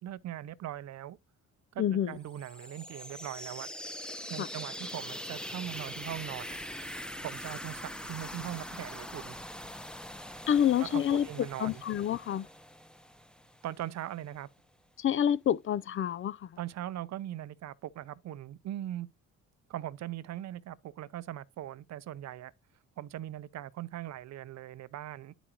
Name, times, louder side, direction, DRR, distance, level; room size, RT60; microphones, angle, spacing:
voice 1, 0.0-1.2 1.7-3.7 4.3-6.6 7.2-9.3 10.8-11.8 13.6-14.5 16.6-19.1 19.7-22.5 23.0-25.3, right 12 dB, 60° right, 0.6 m, -40 dB
voice 2, 1.8-2.2 4.4-4.5 10.5-12.5 15.0-16.5, left 9 dB, 45° left, 0.4 m, -28 dB
sound 1, 2.2-13.9, equal, 5° left, 0.9 m, -43 dB
11.0 x 5.0 x 2.9 m
cardioid pair, 90°, 30 cm